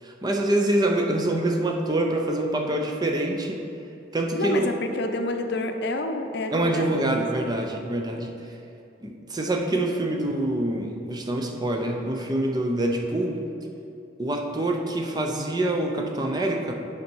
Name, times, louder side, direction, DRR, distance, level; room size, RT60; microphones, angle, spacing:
voice 1, 0.0-3.6 4.1-4.7 6.5-8.6 9.0-13.4 14.2-16.7, right 1 dB, 25° right, 2 dB, 0.7 m, -25 dB
voice 2, 4.3-7.2, left 2 dB, 65° left, 6 dB, 0.6 m, -29 dB
8.2 x 5.2 x 4.6 m, 2.7 s
head